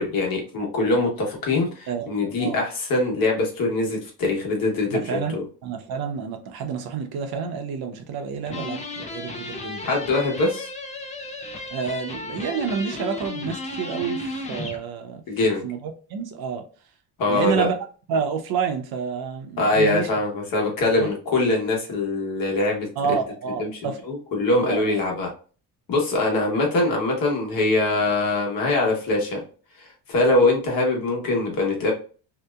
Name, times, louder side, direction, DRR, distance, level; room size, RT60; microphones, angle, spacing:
voice 1, 0.0-5.4 9.8-10.7 15.3-15.6 17.2-17.7 19.6-22.9 23.6-25.3 25.9-29.4 29.8-31.9, left 2 dB, 55° left, -1 dB, 1.1 m, -23 dB
voice 2, 1.9-2.6 4.9-5.4 5.6-9.8 11.7-16.6 17.3-17.8 18.1-20.1 21.0-21.1 23.0-24.0 24.5-24.9, right 6 dB, 60° right, 6 dB, 0.7 m, -29 dB
sound 1, 8.5-14.8, left 2 dB, 20° left, 0.4 m, -34 dB
2.7 x 2.1 x 2.2 m, 0.39 s
cardioid pair, 125°, 41 cm